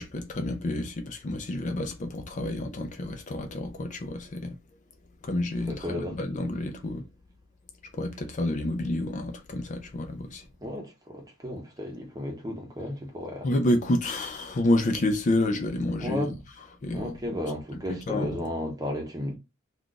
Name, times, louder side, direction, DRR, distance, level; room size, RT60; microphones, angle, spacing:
voice 1, 0.0-4.6 5.2-7.0 7.9-10.4 13.4-17.2 17.7-18.5, left 1 dB, 35° left, 0.4 m, -29 dB
voice 2, 5.7-6.2 10.6-13.5 16.0-16.4 16.9-19.3, left 1 dB, 20° right, 0.7 m, -33 dB
2.4 x 2.4 x 3.8 m
head